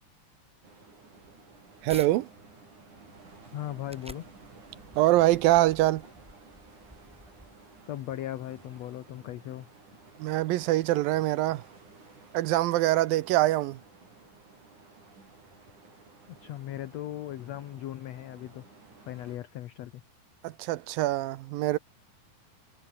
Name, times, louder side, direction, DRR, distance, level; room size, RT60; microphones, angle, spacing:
sound 1, 0.6-19.4, right 3 dB, 55° right, 8.5 m, -54 dB
sound 2, 1.2-2.1 2.6-7.9, equal, ahead, 4.1 m, -51 dB
voice 1, 1.8-2.3 5.0-6.0 10.2-11.6 12.3-13.8 20.4-21.8, right 16 dB, 80° right, 2.6 m, -24 dB
voice 2, 3.5-4.2 7.8-9.7 16.3-18.6 19.1-20.0, left 13 dB, 70° left, 1.7 m, -38 dB
omnidirectional pair, 4.1 m